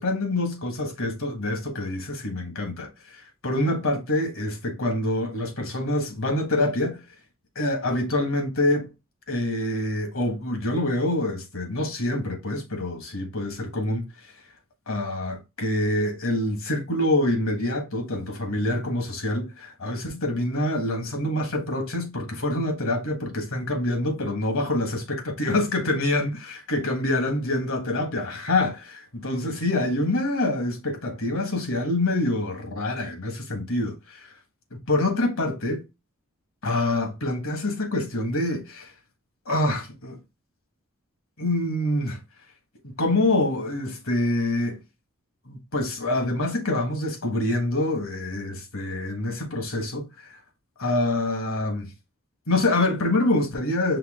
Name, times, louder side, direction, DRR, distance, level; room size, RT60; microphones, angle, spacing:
voice 1, 0.0-7.0 7.5-8.9 9.3-14.1 14.9-34.3 34.7-35.8 36.6-38.9 39.4-40.2 41.4-42.2 43.0-44.8 45.5-50.4 50.8-51.9 52.5-54.0, left 1 dB, 70° left, 1.4 m, -26 dB
5.6 x 2.3 x 3.5 m
head